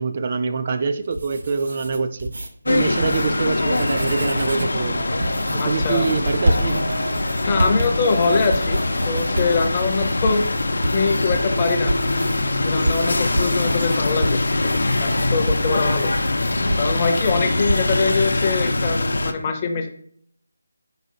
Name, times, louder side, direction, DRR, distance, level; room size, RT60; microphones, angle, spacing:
voice 1, 0.0-2.3 2.7-5.0 5.5-6.8, right 5 dB, 35° right, 9 dB, 0.3 m, -25 dB
sound 1, 1.0-2.5 2.9-3.3 3.6-4.8 5.2-12.4 12.9-17.4 17.7-18.0, right 1 dB, 65° right, 0.7 m, -28 dB
sound 2, 2.7-19.3, left 2 dB, 75° left, 0.5 m, -23 dB
sound 3, 3.5-8.8, right 1 dB, 80° right, 1.2 m, -33 dB
voice 2, 5.6-6.1 7.4-8.8 9.1-10.5 10.8-11.9 12.6-16.1 16.8-19.9, left 4 dB, 20° left, 5 dB, 0.5 m, -23 dB
4.8 x 4.0 x 2.7 m, 0.64 s
figure-of-eight pair, 170°, 0 cm